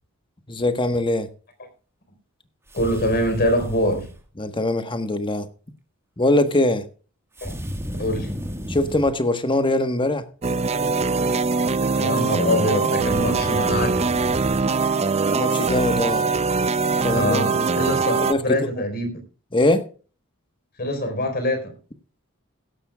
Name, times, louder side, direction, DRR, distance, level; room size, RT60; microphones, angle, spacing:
voice 1, 0.5-1.3 4.4-5.5 6.2-6.9 8.7-10.2 15.3-16.3 17.0-17.7 18.0-18.6 19.5-19.9, left 1 dB, 25° left, 1.3 m, -22 dB
voice 2, 2.7-4.1 7.4-7.6 8.0-8.3 12.0-14.1 17.1-18.1 18.4-19.1 20.8-21.7, left 1 dB, 50° left, 4.2 m, -24 dB
sound 1, 2.7-4.2 7.4-9.2 13.0-14.6, equal, 10° right, 1.6 m, -33 dB
sound 2, 10.4-18.3, right 4 dB, 30° right, 0.6 m, -22 dB
16.5 x 12.5 x 2.3 m
head